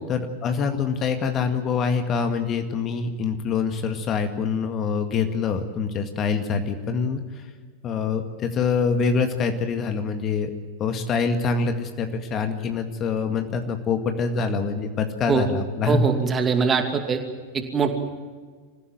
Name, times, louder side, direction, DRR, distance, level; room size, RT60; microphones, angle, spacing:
voice 1, 0.1-7.4 7.8-10.5 10.8-16.0, left 5 dB, 30° left, 7 dB, 2.0 m, -25 dB
voice 2, 15.9-17.2 17.5-17.9, right 5 dB, 20° right, 6 dB, 2.5 m, -22 dB
25.5 x 16.0 x 9.2 m, 1.5 s
figure-of-eight pair, 90°, 0 cm